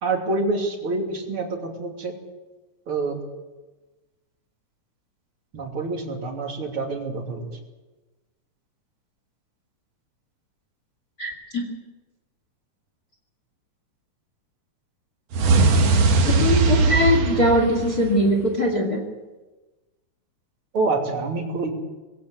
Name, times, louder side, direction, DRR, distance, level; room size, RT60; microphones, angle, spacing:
voice 1, 0.0-2.2 2.9-3.2 5.5-7.5 20.7-21.7, right 3 dB, 45° right, 2 dB, 3.6 m, -26 dB
voice 2, 11.2-11.6 16.3-19.0, left 1 dB, 30° left, 2 dB, 2.8 m, -21 dB
sound 1, 15.3-18.5, right 3 dB, 60° right, 2.6 m, -19 dB
21.5 x 16.5 x 7.9 m, 1.2 s
omnidirectional pair, 3.6 m